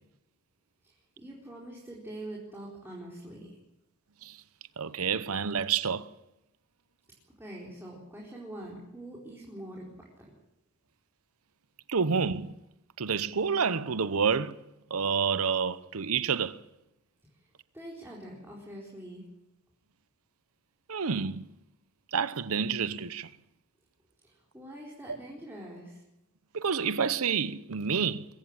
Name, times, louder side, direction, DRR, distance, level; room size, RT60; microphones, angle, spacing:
voice 1, 0.8-3.6 7.4-10.3 17.7-19.2 24.2-26.0, right 1 dB, 10° right, 4.3 m, -44 dB
voice 2, 4.8-6.1 11.9-12.5 13.0-14.6 14.9-16.6 20.9-21.5 22.1-23.3 26.5-28.3, right 6 dB, 75° right, 0.8 m, -28 dB
22.5 x 16.5 x 8.9 m
head